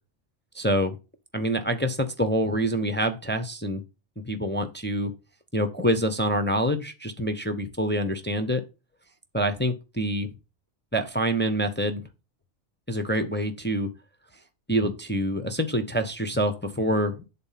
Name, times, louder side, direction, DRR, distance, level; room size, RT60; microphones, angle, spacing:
voice 1, 0.5-1.0 1.3-3.8 4.3-5.1 5.5-8.6 9.3-10.3 10.9-12.0 12.9-13.9 14.7-17.2, right 1 dB, 10° left, 7 dB, 0.7 m, -26 dB
8.6 x 4.0 x 5.7 m, 0.29 s
omnidirectional pair, 1.2 m